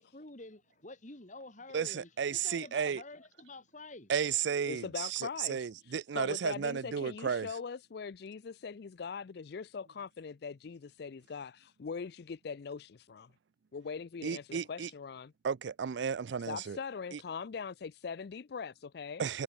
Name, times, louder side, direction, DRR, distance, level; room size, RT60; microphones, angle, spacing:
voice 1, 0.0-4.1, left 2 dB, 40° left, 2.6 m, -49 dB
voice 2, 1.7-3.0 4.1-7.5 14.2-14.9 15.4-16.8 19.2-19.4, right 7 dB, 70° right, 0.4 m, -33 dB
voice 3, 4.7-13.3 13.7-15.3 16.4-19.2, left 5 dB, 60° left, 0.4 m, -41 dB
head